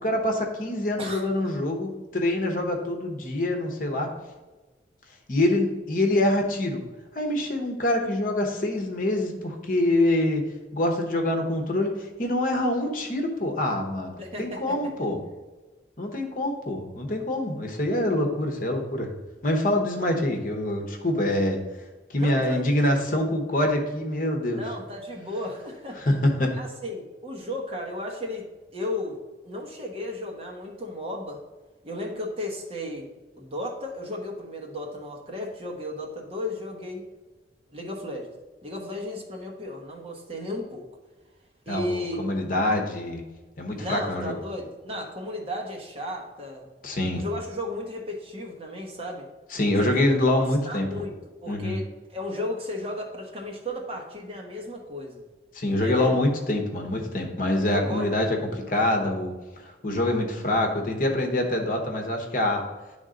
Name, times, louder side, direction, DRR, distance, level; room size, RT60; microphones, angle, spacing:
voice 1, 0.0-4.1 5.3-6.8 7.1-10.4 10.7-15.2 16.0-19.1 19.4-21.6 22.1-24.6 26.0-26.5 41.7-43.2 43.6-44.4 46.8-47.2 49.5-50.9 51.5-51.8 55.5-62.6, left 1 dB, 50° left, 2 dB, 1.0 m, -25 dB
voice 2, 1.0-1.3 14.2-14.8 22.2-23.0 24.5-26.0 26.5-29.2 29.4-31.4 31.8-33.1 33.4-37.0 37.7-38.3 38.6-40.8 41.7-42.2 43.7-46.7 47.1-49.3 49.8-50.0 50.3-55.2 55.7-56.1 57.7-58.1, left 1 dB, 30° right, -1 dB, 1.2 m, -34 dB
10.5 x 3.6 x 3.8 m, 1.2 s
head